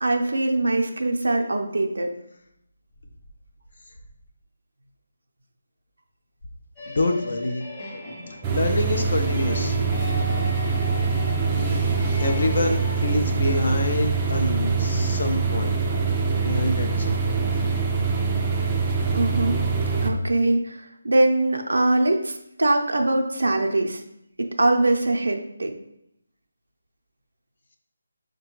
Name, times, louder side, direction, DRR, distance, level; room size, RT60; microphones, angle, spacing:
voice 1, 0.0-2.1 19.1-19.6 20.0-24.0 24.4-25.7, right 2 dB, 85° right, 4 dB, 0.5 m, -22 dB
sound 1, 6.8-13.1, left 1 dB, 10° left, 0.7 m, -37 dB
voice 2, 6.9-7.6 8.5-9.8 11.5-11.9 12.2-15.7 16.4-17.4, left 2 dB, 55° left, 3 dB, 0.4 m, -26 dB
sound 2, 8.4-20.1, right 4 dB, 15° right, 0.4 m, -24 dB
4.9 x 2.2 x 3.0 m, 0.76 s
figure-of-eight pair, 170°, 0 cm